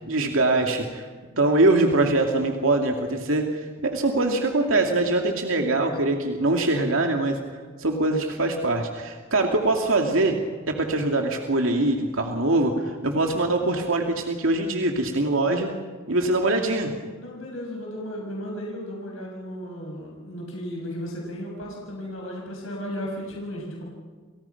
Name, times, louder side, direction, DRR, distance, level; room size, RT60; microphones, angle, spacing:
voice 1, 0.1-1.1 1.3-3.5 3.8-7.4 7.8-10.4 10.7-15.7 16.1-16.9, right 2 dB, 85° right, 2 dB, 2.6 m, -23 dB
voice 2, 17.2-23.8, equal, 80° left, -2 dB, 6.7 m, -35 dB
30.0 x 29.0 x 5.9 m, 1.4 s
head